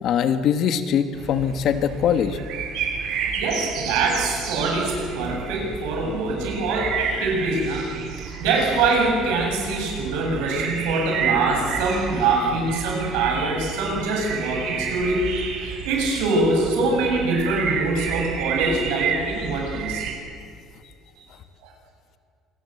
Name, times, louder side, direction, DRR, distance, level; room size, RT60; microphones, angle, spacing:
voice 1, 0.0-2.4, left 8 dB, 45° left, 10 dB, 1.4 m, -22 dB
sound 1, 1.1-20.1, right 6 dB, 55° right, 3.7 m, -30 dB
voice 2, 3.4-7.9 8.4-15.3 15.6-20.0 21.2-21.3 21.6-21.7, right 3 dB, 85° right, 1 dB, 7.6 m, -24 dB
26.5 x 21.0 x 7.9 m, 2.3 s
cardioid pair, 180°, 0 cm